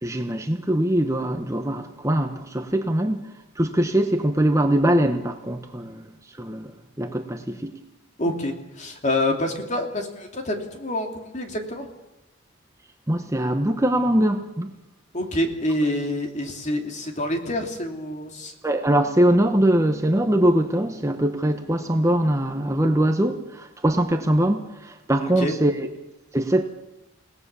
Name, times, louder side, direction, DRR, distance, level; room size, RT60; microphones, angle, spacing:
voice 1, 0.0-3.3 3.6-6.1 6.4-6.7 7.0-7.7 13.1-14.7 18.6-25.7 26.3-26.6, right 1 dB, 15° right, 5 dB, 1.1 m, -22 dB
voice 2, 8.2-11.9 15.1-18.5 25.2-25.6, left 1 dB, 35° left, 4 dB, 2.8 m, -27 dB
29.5 x 18.0 x 6.9 m, 0.96 s
head